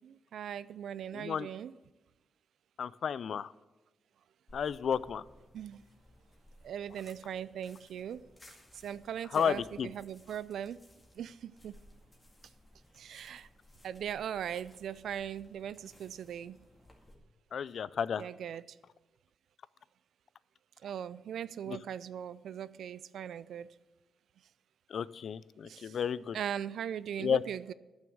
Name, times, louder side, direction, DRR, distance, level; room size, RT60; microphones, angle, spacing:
voice 1, 0.0-1.7 5.5-5.8 6.6-8.2 8.7-10.8 11.2-11.7 12.9-13.5 13.8-16.6 18.2-18.6 20.8-23.7 25.6-26.0 26.3-27.7, right 9 dB, 85° right, 0.3 m, -39 dB
voice 2, 1.1-1.5 2.8-3.5 4.5-5.2 9.3-9.9 17.5-18.2 21.7-21.8 24.9-26.4 27.2-27.4, left 7 dB, 65° left, 0.3 m, -32 dB
sound 1, 4.5-17.1, left 1 dB, 20° left, 2.1 m, -60 dB
10.5 x 6.2 x 8.5 m
cardioid pair, 115°, 0 cm